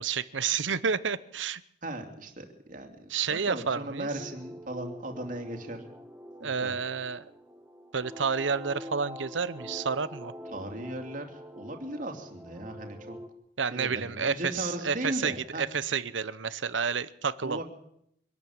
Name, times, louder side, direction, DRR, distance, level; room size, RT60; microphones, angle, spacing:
voice 1, 0.0-1.6 3.1-4.1 6.4-7.3 7.9-10.3 13.6-17.6, right 6 dB, 85° right, 16 dB, 0.9 m, -30 dB
voice 2, 1.8-5.9 6.4-6.8 10.5-13.2 13.7-15.6 17.4-17.6, right 1 dB, 45° right, 4 dB, 2.9 m, -37 dB
sound 1, 4.2-13.3, equal, 10° right, 1.7 m, -45 dB
25.0 x 12.5 x 8.8 m, 0.75 s
head